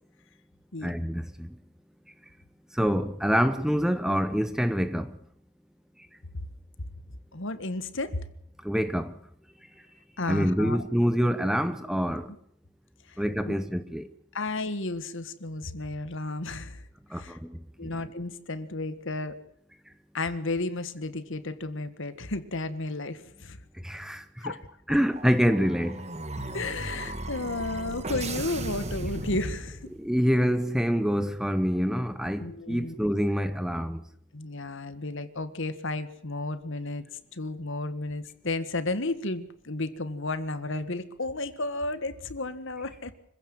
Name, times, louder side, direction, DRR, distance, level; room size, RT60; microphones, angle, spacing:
voice 1, 0.8-1.5 2.8-5.1 8.6-9.1 10.3-12.3 13.2-14.1 17.1-17.4 17.8-17.9 23.8-24.5 24.9-26.0 30.0-34.0, equal, ahead, 0.8 m, -26 dB
voice 2, 7.3-8.3 10.2-10.8 13.1-13.6 14.3-16.8 17.1-17.4 17.8-19.4 20.1-23.6 24.4-25.0 26.5-29.9 32.4-33.0 34.3-37.0 37.3-43.1, left 2 dB, 55° left, 1.7 m, -33 dB
sound 1, 25.1-30.1, right 2 dB, 30° right, 1.8 m, -36 dB
25.5 x 15.5 x 7.7 m
head